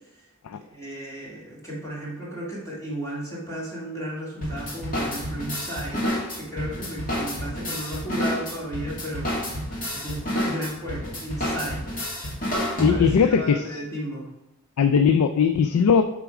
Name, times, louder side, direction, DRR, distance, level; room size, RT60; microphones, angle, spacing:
voice 1, 0.7-9.3 9.9-12.0 12.9-14.3, right 1 dB, 15° left, -6 dB, 1.9 m, -34 dB
sound 1, 4.4-13.3, equal, 40° left, 2.0 m, -29 dB
voice 2, 12.8-13.8 14.8-16.0, left 6 dB, 70° left, 9 dB, 0.3 m, -19 dB
7.9 x 3.7 x 4.9 m, 0.94 s
head